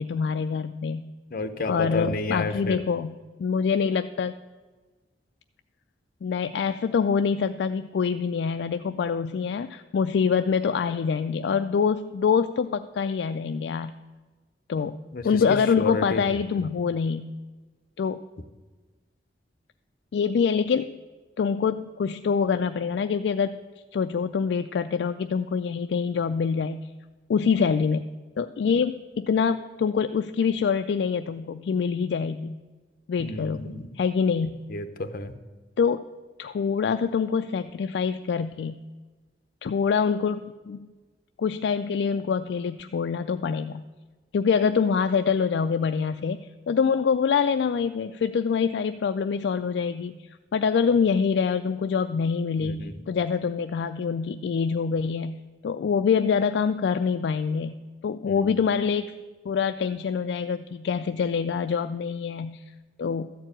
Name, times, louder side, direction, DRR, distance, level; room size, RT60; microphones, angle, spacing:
voice 1, 0.0-1.1 1.7-4.4 6.2-13.9 14.7-15.0 15.2-17.3 18.0-18.2 20.1-21.0 21.4-23.6 23.9-26.9 27.3-28.1 28.4-32.6 33.1-34.6 35.8-36.1 36.4-38.8 39.6-40.9 41.4-43.8 44.3-57.7 58.0-59.2 59.5-62.6 63.0-63.3, left 6 dB, 65° left, 9 dB, 0.3 m, -25 dB
voice 2, 1.3-2.8 15.1-15.3 15.8-16.2 16.6-16.7 33.2-33.9 34.7-35.3 52.6-53.0 58.3-58.6, left 3 dB, 50° left, 9 dB, 0.8 m, -31 dB
13.0 x 4.6 x 8.8 m, 1.3 s
head